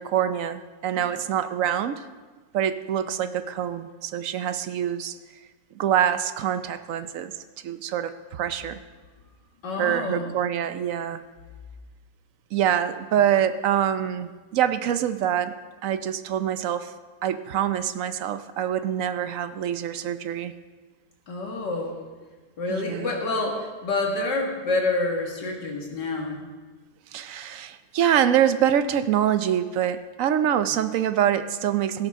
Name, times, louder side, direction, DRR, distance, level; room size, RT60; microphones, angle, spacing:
voice 1, 0.0-2.0 2.5-5.1 5.7-7.3 7.6-8.8 9.8-11.2 12.5-15.6 15.8-16.9 17.2-20.5 22.7-23.1 27.1-32.1, right 10 dB, 65° right, 11 dB, 0.9 m, -25 dB
voice 2, 9.6-10.3 21.3-22.0 22.6-26.5, left 2 dB, 85° left, 0 dB, 2.5 m, -28 dB
16.5 x 13.0 x 3.6 m, 1.3 s
omnidirectional pair, 1.8 m